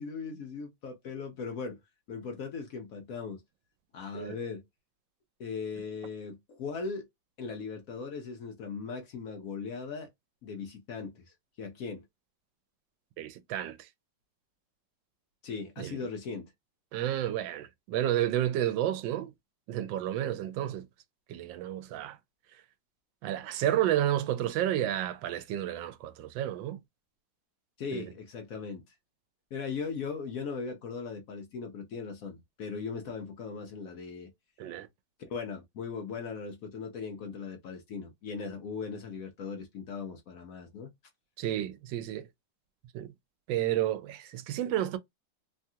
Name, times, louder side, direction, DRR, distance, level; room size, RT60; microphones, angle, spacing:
voice 1, 0.0-1.8 2.1-3.4 3.9-4.6 5.4-7.1 7.4-10.1 10.4-12.1 15.4-16.5 27.8-28.9 29.5-34.3 35.2-40.9, left 5 dB, 65° left, 0.9 m, -38 dB
voice 2, 13.2-13.9 15.8-16.0 16.9-19.3 19.7-20.9 21.3-22.2 23.2-26.8 27.9-28.1 34.6-34.9 41.4-42.3 42.9-43.1 43.5-45.0, right 12 dB, 90° right, 1.3 m, -31 dB
3.2 x 2.3 x 2.7 m
omnidirectional pair, 2.0 m